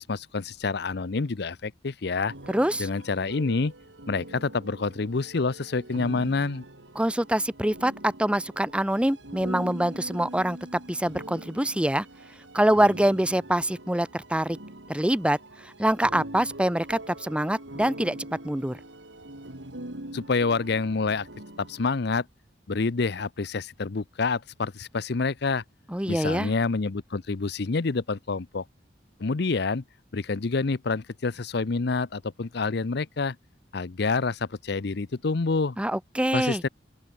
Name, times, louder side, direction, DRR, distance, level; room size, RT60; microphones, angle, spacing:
voice 1, 0.0-2.3 2.8-3.7 4.1-6.6 20.1-21.3 21.6-22.3 22.7-25.6 26.1-28.6 29.2-29.8 30.1-33.4 33.7-35.8 36.3-36.7, left 4 dB, 65° left, 0.7 m, -27 dB
sound 1, 2.3-22.0, right 1 dB, 90° right, 3.9 m, -43 dB
voice 2, 2.5-2.9 6.9-12.1 12.5-14.6 14.9-15.4 15.6-18.2 18.4-18.8 25.9-26.5 35.8-36.6, right 1 dB, 5° right, 1.0 m, -25 dB
open air
head